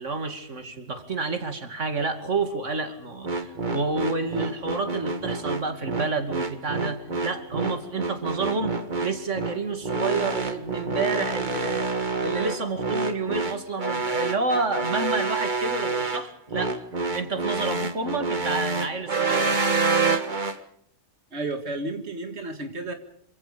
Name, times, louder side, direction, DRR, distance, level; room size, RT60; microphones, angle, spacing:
voice 1, 0.0-11.9 12.2-16.8 17.1-20.1, right 3 dB, 90° right, 7 dB, 2.9 m, -29 dB
sound 1, 3.2-20.6, right 3 dB, 40° right, 1.8 m, -27 dB
voice 2, 21.3-22.9, right 2 dB, 65° right, 5 dB, 2.4 m, -32 dB
27.5 x 25.5 x 5.3 m, 0.66 s
omnidirectional pair, 1.2 m